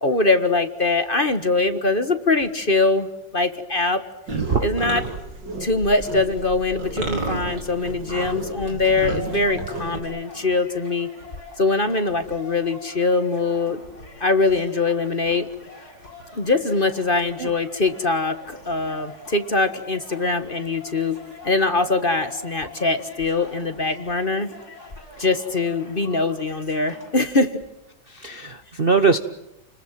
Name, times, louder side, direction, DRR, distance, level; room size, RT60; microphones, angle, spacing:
voice 1, 0.0-3.1 3.3-4.0 4.6-5.0 5.6-11.1 11.6-13.8 14.2-15.5 16.3-24.5 25.2-27.5, left 3 dB, 30° left, 9 dB, 1.5 m, -22 dB
sound 1, 4.3-10.0, right 2 dB, 65° right, 4.5 m, -31 dB
sound 2, 8.9-27.1, left 2 dB, 50° left, 7.9 m, -44 dB
voice 2, 28.1-29.2, right 4 dB, 40° right, 10 dB, 0.9 m, -22 dB
29.5 x 20.5 x 7.6 m, 0.92 s
omnidirectional pair, 2.1 m